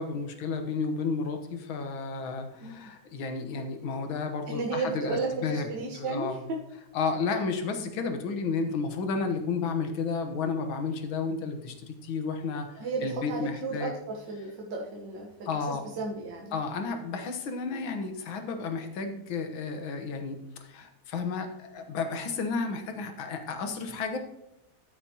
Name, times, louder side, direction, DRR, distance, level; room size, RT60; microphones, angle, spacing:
voice 1, 0.0-5.7 6.0-6.4 6.9-14.0 15.5-15.8 16.5-24.2, left 4 dB, 75° left, 6 dB, 1.9 m, -32 dB
voice 2, 4.5-6.6 12.8-16.5, right 3 dB, 65° right, -2 dB, 1.8 m, -34 dB
14.0 x 6.9 x 2.9 m, 0.90 s
omnidirectional pair, 2.2 m